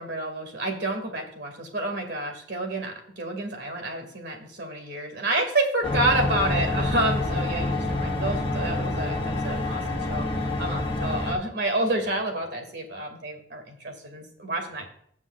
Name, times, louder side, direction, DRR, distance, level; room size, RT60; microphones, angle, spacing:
voice 1, 0.0-14.9, right 2 dB, 65° right, 4 dB, 2.4 m, -29 dB
sound 1, 5.8-11.3, left 2 dB, 30° left, 1.4 m, -27 dB
15.5 x 7.2 x 2.5 m, 0.66 s
head